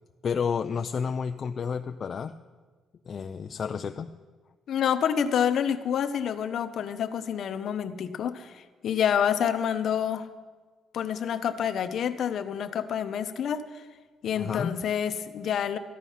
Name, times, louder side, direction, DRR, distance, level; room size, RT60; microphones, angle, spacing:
voice 1, 0.2-2.3 3.1-4.1 14.3-14.8, left 6 dB, 35° left, 7 dB, 0.3 m, -30 dB
voice 2, 4.7-10.3 10.9-13.8 14.2-15.8, left 8 dB, 50° left, 10 dB, 0.7 m, -28 dB
13.5 x 11.0 x 5.6 m, 1.4 s
cardioid pair, 170°, 0 cm